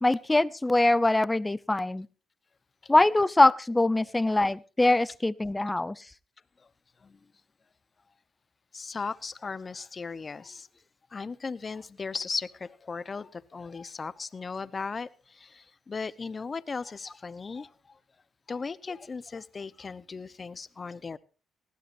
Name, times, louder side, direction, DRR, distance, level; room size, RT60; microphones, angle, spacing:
voice 1, 0.0-2.1 2.9-6.0, left 2 dB, 15° left, 0.6 m, -23 dB
voice 2, 8.7-10.7 11.1-17.7 18.5-21.2, left 4 dB, 35° left, 0.9 m, -37 dB
19.5 x 15.5 x 2.7 m
cardioid pair, 90°, 0 cm